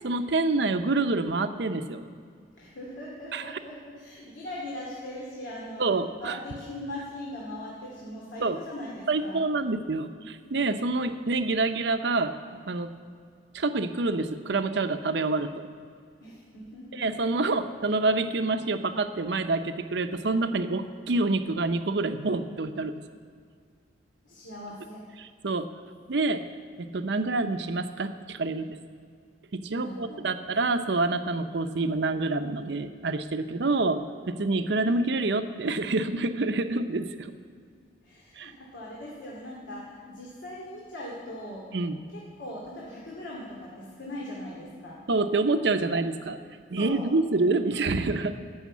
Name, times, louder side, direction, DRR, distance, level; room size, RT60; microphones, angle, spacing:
voice 1, 0.0-2.0 3.3-3.4 5.8-6.4 8.4-8.6 9.1-12.3 12.7-12.9 13.5-15.6 17.0-22.9 25.2-25.7 26.1-26.4 26.8-28.8 29.5-37.3 38.4-38.5 41.7-42.0 45.1-46.4 46.7-48.4, right 3 dB, 65° right, 9 dB, 0.7 m, -27 dB
voice 2, 2.6-5.9 6.2-9.4 16.2-17.4 24.2-25.0 29.7-30.4 38.0-41.7 42.1-45.0 46.7-47.2, left 1 dB, 90° left, -4 dB, 2.4 m, -40 dB
14.5 x 6.4 x 8.3 m, 2.1 s
head